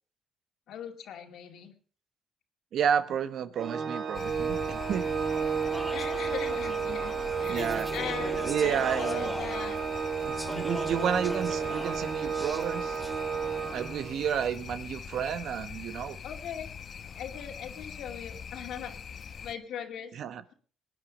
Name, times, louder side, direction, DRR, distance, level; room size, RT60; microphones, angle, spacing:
voice 1, 0.7-1.7 5.9-9.8 11.6-11.8 16.2-16.7 17.2-19.0 19.4-20.1, left 8 dB, 75° left, 6 dB, 2.4 m, -40 dB
voice 2, 2.7-5.1 7.5-7.9 8.4-9.3 10.2-13.0 13.7-16.2 20.1-20.4, right 8 dB, 70° right, 13 dB, 1.2 m, -31 dB
Organ, 3.6-14.3, right 6 dB, 50° right, 1.9 m, -32 dB
sound 1, 4.1-19.5, left 7 dB, 50° left, 1.1 m, -43 dB
Speech / Chatter, 4.5-13.9, equal, ahead, 1.6 m, -41 dB
20.5 x 9.6 x 5.1 m, 0.43 s
cardioid pair, 90°, 0 cm